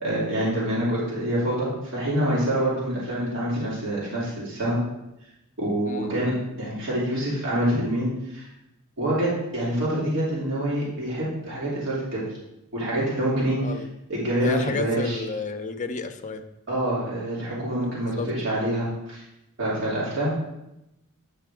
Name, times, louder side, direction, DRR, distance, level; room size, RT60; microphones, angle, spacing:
voice 1, 0.0-4.8 5.6-8.5 9.0-12.2 12.7-13.6 14.1-15.2 16.7-19.2 19.6-20.3, right 1 dB, 60° right, -8 dB, 3.0 m, -26 dB
voice 2, 14.4-16.4 17.8-18.3, left 4 dB, 35° left, 7 dB, 0.6 m, -31 dB
9.8 x 5.8 x 3.6 m, 0.90 s
head